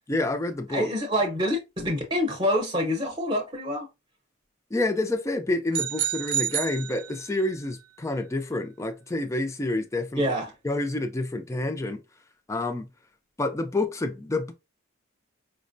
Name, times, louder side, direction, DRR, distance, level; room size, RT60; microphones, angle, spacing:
voice 1, 0.1-0.9 4.7-10.3 10.6-12.0 12.5-12.9 13.4-14.5, left 2 dB, 15° left, 0.3 m, -28 dB
voice 2, 0.7-3.9 10.2-10.5, equal, 20° right, 0.7 m, -26 dB
sound 1, 5.7-7.5, right 11 dB, 85° right, 0.4 m, -30 dB
5.0 x 2.1 x 2.5 m
head